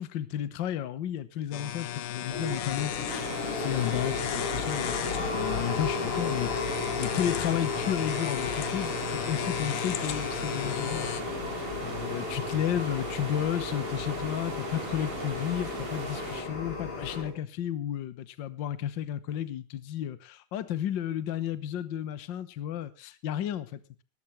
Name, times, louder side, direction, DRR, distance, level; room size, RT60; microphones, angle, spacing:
voice 1, 0.0-11.3 11.6-23.8, left 10 dB, 65° left, 15 dB, 1.1 m, -33 dB
sound 1, 1.5-11.2, left 11 dB, 85° left, 2.6 m, -36 dB
sound 2, 2.3-17.3, left 4 dB, 45° left, 4.1 m, -35 dB
sound 3, 3.1-16.4, right 4 dB, 50° right, 3.5 m, -39 dB
19.0 x 14.0 x 3.2 m, 0.33 s
omnidirectional pair, 3.5 m